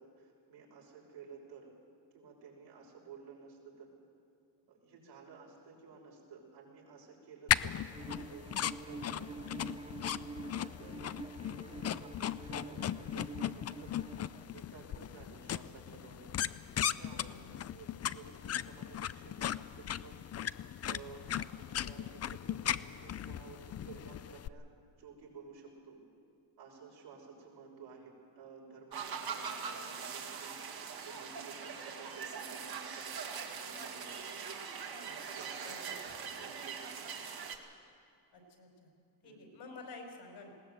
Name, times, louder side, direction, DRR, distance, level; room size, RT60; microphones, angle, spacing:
voice 1, 0.0-1.7 2.1-3.9 4.7-9.3 10.3-10.4 10.8-11.0 11.3-14.0 14.5-16.3 17.0-20.2 20.8-24.7 25.0-26.0 26.6-33.2 33.6-34.4 34.9-35.8 36.1-37.3 39.2-39.4, right 5 dB, 80° right, -2 dB, 6.2 m, -54 dB
sound 1, 7.5-24.5, left 10 dB, 35° left, 0.5 m, -37 dB
Bowed string instrument, 7.9-14.5, right 4 dB, 15° right, 0.5 m, -47 dB
voice 2, 17.2-17.6 35.6-36.1 38.3-38.9 39.2-40.5, left 3 dB, 70° left, 2 dB, 5.2 m, -51 dB
sound 2, 28.9-37.6, right 6 dB, 60° right, 2.4 m, -42 dB
20.5 x 17.5 x 7.9 m, 2.4 s
cardioid pair, 110°, 43 cm